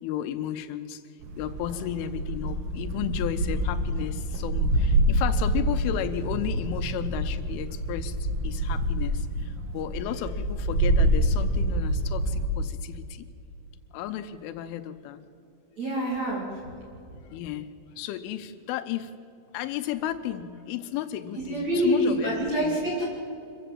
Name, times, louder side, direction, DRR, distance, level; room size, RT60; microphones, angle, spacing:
voice 1, 0.0-1.0 1.4-8.2 8.4-13.3 13.9-15.2 16.4-16.5 17.3-17.7 18.0-19.1 19.5-22.8, left 11 dB, 80° left, 11 dB, 3.1 m, -33 dB
sound 1, 1.2-12.5, right 1 dB, 80° right, 4.3 m, -27 dB
voice 2, 15.8-16.5 21.4-23.0, right 1 dB, 40° right, -3 dB, 3.2 m, -26 dB
26.0 x 15.0 x 7.7 m, 2.7 s
omnidirectional pair, 5.8 m